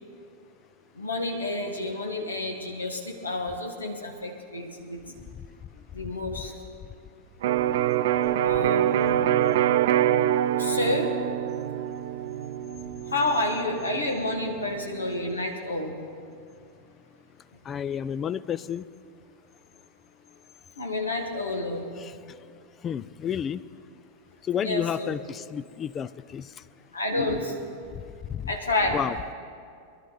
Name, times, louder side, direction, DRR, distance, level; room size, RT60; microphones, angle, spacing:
voice 1, 0.9-5.2 5.9-6.5 8.4-9.2 10.6-11.2 13.0-16.0 20.8-21.9 24.6-25.1 26.9-27.5 28.5-29.0, left 2 dB, 75° left, 3 dB, 1.6 m, -29 dB
Electric guitar, 7.4-15.2, right 11 dB, 55° right, 0.4 m, -25 dB
voice 2, 17.6-18.9 22.0-22.2 22.8-23.6 24.4-26.5 27.9-28.5 28.9-29.1, left 9 dB, 25° left, 16 dB, 0.4 m, -31 dB
22.0 x 12.0 x 3.9 m, 2.3 s
figure-of-eight pair, 90°, 0 cm